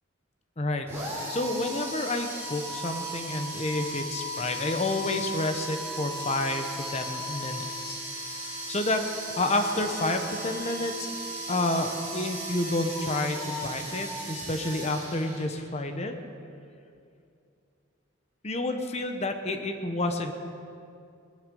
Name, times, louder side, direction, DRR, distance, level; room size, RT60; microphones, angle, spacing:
voice 1, 0.6-0.9 1.3-8.0 8.7-11.1 11.5-16.1 18.4-20.3, left 2 dB, 35° left, 6 dB, 0.9 m, -29 dB
sound 1, 0.9-15.8, right 1 dB, 15° right, 3.9 m, -36 dB
20.0 x 11.0 x 5.4 m, 2.5 s
head